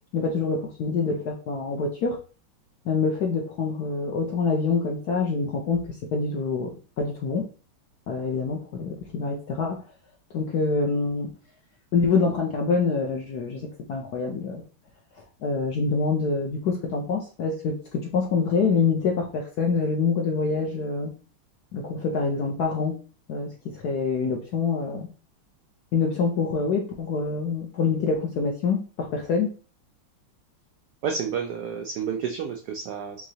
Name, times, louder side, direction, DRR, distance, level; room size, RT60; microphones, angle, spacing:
voice 1, 0.1-2.2 2.8-7.5 8.1-9.8 10.3-11.3 11.9-14.6 15.4-21.1 21.7-23.0 23.3-25.1 25.9-29.5, left 4 dB, 70° left, 1 dB, 0.9 m, -26 dB
voice 2, 31.0-33.3, right 6 dB, 85° right, 3 dB, 0.8 m, -30 dB
4.7 x 3.0 x 2.7 m, 0.36 s
omnidirectional pair, 2.3 m